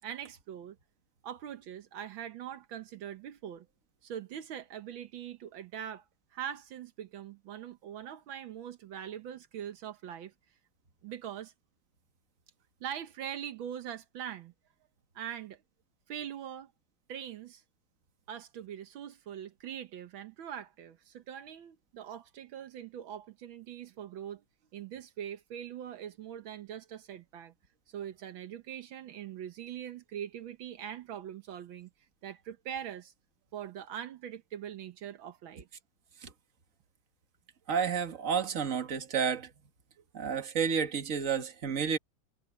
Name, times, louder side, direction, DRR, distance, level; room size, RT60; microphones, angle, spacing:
voice 1, 0.0-0.8 1.2-3.7 4.0-6.1 6.3-10.3 11.0-11.5 12.8-14.5 15.2-15.6 16.1-16.7 17.1-17.6 18.3-24.4 24.7-27.5 27.9-31.9 32.2-33.1 33.5-35.7, right 9 dB, 80° right, 1.8 m, -42 dB
voice 2, 37.7-39.5 40.1-42.0, right 7 dB, 40° right, 1.9 m, -30 dB
omnidirectional pair, 2.1 m